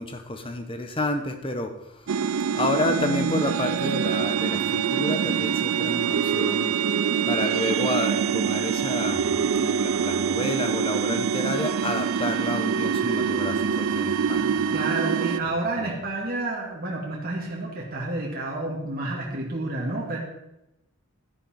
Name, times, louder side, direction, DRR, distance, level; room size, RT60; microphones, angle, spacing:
voice 1, 0.0-1.7 2.5-6.7 7.3-14.8 15.8-15.9, left 2 dB, 25° left, 7 dB, 1.2 m, -30 dB
sound 1, 2.1-15.4, right 7 dB, 80° right, 0.5 m, -25 dB
voice 2, 14.7-20.2, right 2 dB, 45° right, -2 dB, 2.1 m, -30 dB
11.5 x 11.0 x 4.4 m, 0.88 s
head